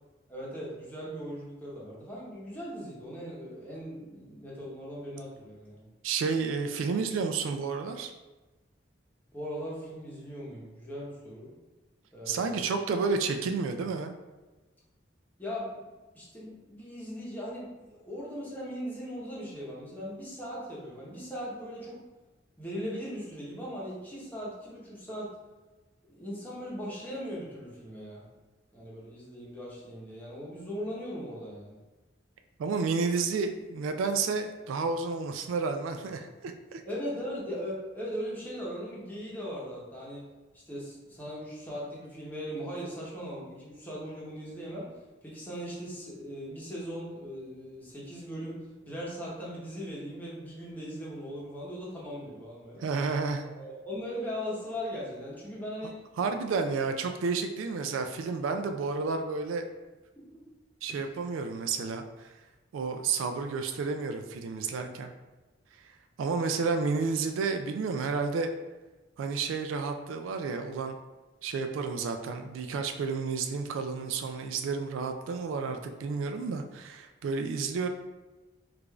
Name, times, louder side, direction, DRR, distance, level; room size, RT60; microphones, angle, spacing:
voice 1, 0.3-5.9 9.3-11.5 12.1-12.8 15.4-15.8 16.1-22.0 22.6-25.3 26.1-28.3 28.7-31.8 36.8-40.2 40.5-44.9 45.2-53.1 53.6-56.0 56.6-56.7 60.2-60.3 60.9-61.0 64.7-64.9 75.5-75.8 77.6-77.7, equal, 10° left, -6 dB, 0.9 m, -39 dB
voice 2, 6.0-8.1 12.3-14.1 32.6-36.8 52.8-53.5 56.2-59.6 60.8-62.0 62.7-65.1 65.8-65.9 66.2-68.5 69.2-71.0 71.4-77.9, right 4 dB, 85° right, 6 dB, 0.3 m, -31 dB
4.8 x 2.5 x 2.3 m, 1.2 s
head